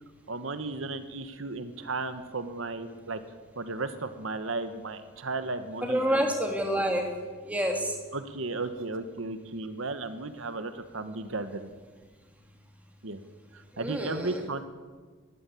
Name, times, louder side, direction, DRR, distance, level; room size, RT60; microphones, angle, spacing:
voice 1, 0.3-3.2 3.6-6.2 8.1-11.7 13.0-13.2 13.5-14.6, right 3 dB, 80° right, 10 dB, 1.4 m, -35 dB
voice 2, 5.8-7.1 7.4-7.9 13.7-14.5, equal, 5° right, 2 dB, 2.9 m, -28 dB
21.0 x 15.5 x 8.5 m, 1.5 s
head